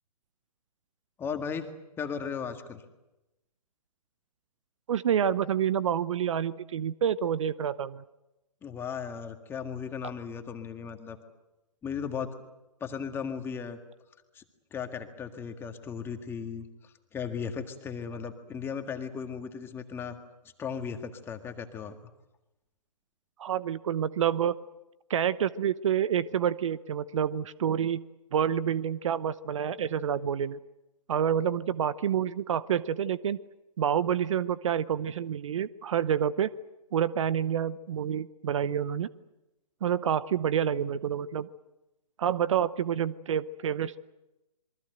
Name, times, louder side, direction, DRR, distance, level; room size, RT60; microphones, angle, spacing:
voice 1, 1.2-1.7 2.0-2.8 8.6-11.2 11.8-12.3 12.8-13.8 14.3-14.4 14.7-20.2 20.6-22.0, left 6 dB, 10° left, 6 dB, 1.8 m, -36 dB
voice 2, 4.9-8.0 23.4-24.6 25.1-28.0 28.3-30.6 31.1-33.4 33.8-36.5 36.9-39.1 39.8-41.5 42.2-44.0, right 9 dB, 50° right, 17 dB, 0.8 m, -28 dB
27.0 x 23.0 x 7.9 m, 0.97 s
hypercardioid pair, 145°, 20 cm